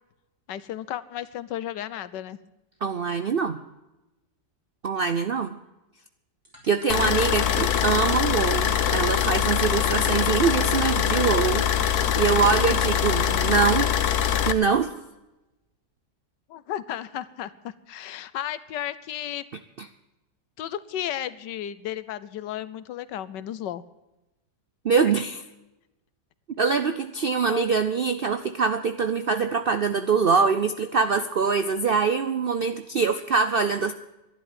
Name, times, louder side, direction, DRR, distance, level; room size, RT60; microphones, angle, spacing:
voice 1, 0.5-2.4 7.0-7.7 16.5-19.4 20.6-23.8 27.5-27.7, left 11 dB, 90° left, 15 dB, 1.4 m, -34 dB
voice 2, 2.8-3.6 4.8-5.6 6.7-11.7 12.2-13.9 14.5-15.0 19.8-19.9 24.8-25.4 26.6-33.9, right 5 dB, 80° right, 10 dB, 0.5 m, -24 dB
sound 1, 6.4-12.4, left 1 dB, 10° right, 3.5 m, -49 dB
sound 2, 6.9-14.5, left 9 dB, 65° left, 1.3 m, -23 dB
12.0 x 11.0 x 9.2 m, 0.97 s
omnidirectional pair, 1.8 m